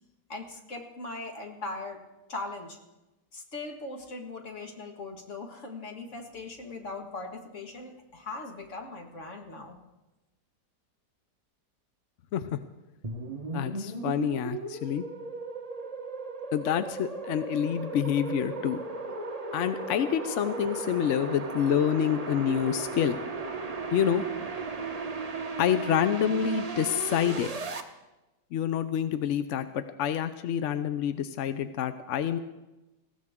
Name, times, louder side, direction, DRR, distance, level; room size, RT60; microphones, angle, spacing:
voice 1, 0.3-2.0 2.3-2.8 3.3-9.8, left 3 dB, 45° left, 3 dB, 2.0 m, -40 dB
sound 1, 13.0-27.8, right 3 dB, 30° right, 0.8 m, -36 dB
voice 2, 13.5-15.0 16.5-18.8 19.5-23.2 23.9-24.2 25.6-27.5 28.5-32.4, left 9 dB, 65° left, 10 dB, 0.7 m, -27 dB
20.0 x 16.0 x 3.6 m, 1.0 s
omnidirectional pair, 1.8 m